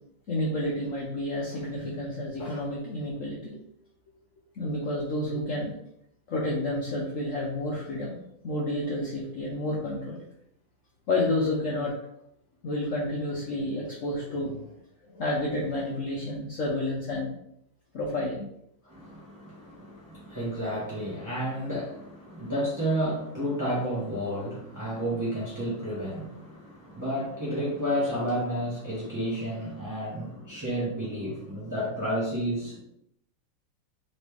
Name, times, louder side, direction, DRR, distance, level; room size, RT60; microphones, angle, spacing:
voice 1, 0.3-3.6 4.5-5.7 6.3-8.2 8.4-10.2 11.1-11.9 12.6-14.8 15.1-17.4 17.9-18.4, left 1 dB, 85° left, -3 dB, 0.7 m, -30 dB
voice 2, 18.8-32.8, equal, 25° right, -9 dB, 0.4 m, -31 dB
4.1 x 3.0 x 3.3 m, 0.74 s
omnidirectional pair, 2.3 m